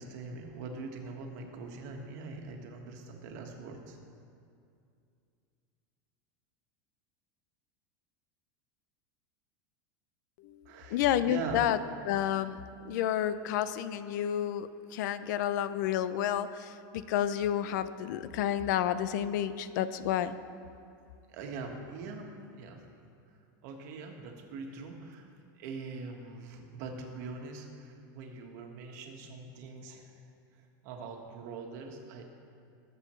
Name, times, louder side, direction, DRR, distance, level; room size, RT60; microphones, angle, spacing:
voice 1, 0.0-4.0 10.6-11.6 21.3-22.8 23.6-25.3 25.6-30.1 30.5-32.2, right 4 dB, 55° right, 2 dB, 1.5 m, -43 dB
voice 2, 10.9-11.8 12.0-12.6 12.8-20.3, left 10 dB, 60° left, 13 dB, 0.5 m, -30 dB
20.5 x 7.7 x 3.2 m, 2.4 s
supercardioid pair, 165°, 11 cm